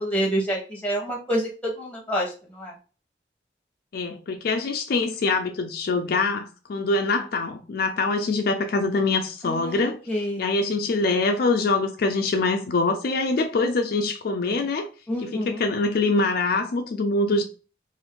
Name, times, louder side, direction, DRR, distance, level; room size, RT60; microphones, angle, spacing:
voice 1, 0.0-2.7 9.4-10.4 15.1-15.6, equal, 10° left, 1.0 m, -28 dB
voice 2, 3.9-10.0 10.4-14.9 15.2-17.4, left 3 dB, 60° left, 0.4 m, -24 dB
2.5 x 2.5 x 3.6 m
head